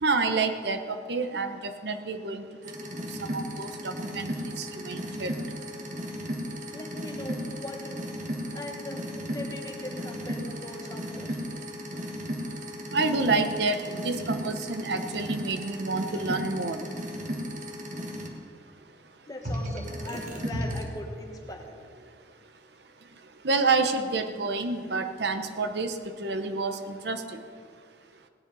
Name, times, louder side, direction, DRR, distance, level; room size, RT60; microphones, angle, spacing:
voice 1, 0.0-2.4 3.2-5.3 12.9-16.9 23.4-27.4, right 3 dB, 60° right, 7 dB, 0.8 m, -29 dB
sound 1, 2.6-18.3 19.4-20.8, equal, 40° right, 1.4 m, -35 dB
voice 2, 6.7-8.2 8.5-11.4 19.3-21.8, left 1 dB, 20° left, 2 dB, 1.5 m, -40 dB
17.0 x 10.0 x 5.5 m, 2.1 s
head